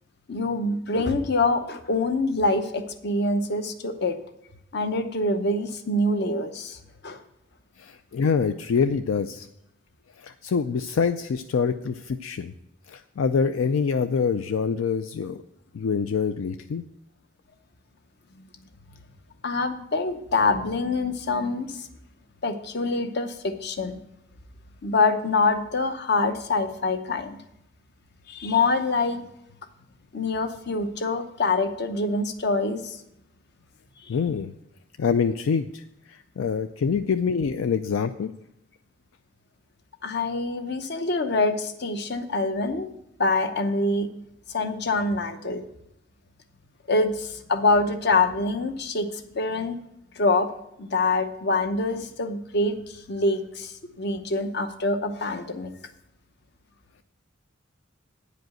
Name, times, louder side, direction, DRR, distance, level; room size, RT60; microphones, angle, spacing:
voice 1, 0.3-4.2 4.7-6.8 7.0-7.2 18.4-18.7 19.4-21.9 22.4-24.0 24.8-27.4 28.3-29.2 30.1-33.0 34.0-34.1 40.0-42.9 43.2-44.1 44.5-45.6 46.9-49.7 50.2-50.5 50.8-55.7, left 3 dB, 55° left, 8 dB, 0.8 m, -25 dB
voice 2, 7.8-9.5 10.2-12.5 12.9-15.4 15.7-16.8 34.1-34.5 35.0-35.8 36.1-38.3, left 6 dB, 75° left, 9 dB, 0.4 m, -25 dB
9.4 x 5.1 x 7.7 m, 0.81 s
head